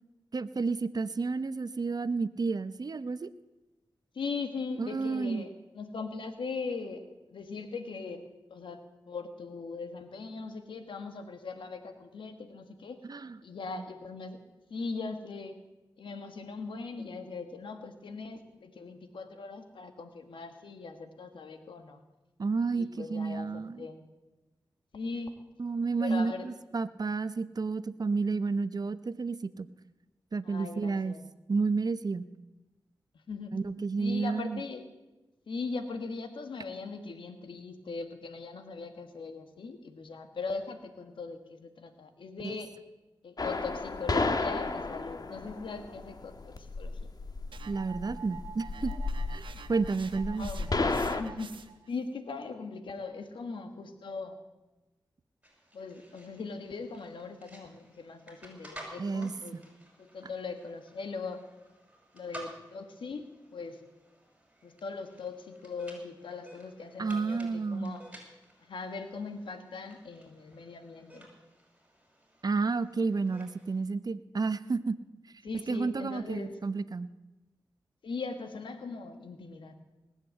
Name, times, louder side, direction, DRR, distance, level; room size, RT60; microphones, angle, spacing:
voice 1, 0.3-3.3 4.8-5.5 13.1-13.4 22.4-23.9 25.6-29.7 30.3-31.2 31.5-32.3 33.5-34.6 42.4-42.6 47.7-48.9 49.3-50.7 59.0-59.6 67.0-68.0 72.4-75.0 75.7-77.1, right 4 dB, 50° right, 14 dB, 0.7 m, -31 dB
voice 2, 4.1-7.0 7.3-13.0 13.4-14.4 14.7-15.6 16.0-22.0 22.7-24.1 24.9-25.3 26.0-26.5 30.4-31.3 33.1-33.6 34.0-34.9 35.5-42.7 43.2-47.0 50.4-50.7 51.0-51.6 51.9-54.4 55.7-59.6 60.0-61.4 62.1-63.8 64.6-68.1 68.6-71.3 75.4-76.6 78.0-79.7, left 4 dB, 80° left, 7 dB, 1.6 m, -40 dB
sound 1, 43.4-51.2, left 3 dB, 50° left, 1.3 m, -33 dB
sound 2, 47.5-51.9, right 6 dB, 80° right, 1.0 m, -47 dB
sound 3, 55.4-73.8, right 1 dB, 15° right, 6.0 m, -53 dB
19.0 x 8.3 x 7.8 m, 1.1 s
cardioid pair, 40°, 8 cm